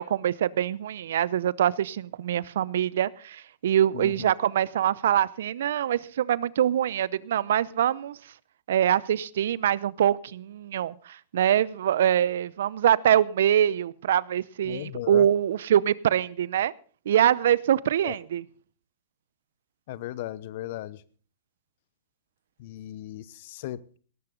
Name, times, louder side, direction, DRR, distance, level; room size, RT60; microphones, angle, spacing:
voice 1, 0.0-8.2 8.7-16.7 17.1-18.4, right 10 dB, 70° right, 22 dB, 0.6 m, -24 dB
voice 2, 3.9-4.3 14.7-15.3 18.0-18.2 19.9-21.0 22.6-23.8, left 14 dB, 60° left, 20 dB, 0.8 m, -36 dB
17.5 x 13.5 x 3.9 m, 0.41 s
hypercardioid pair, 120°, 0 cm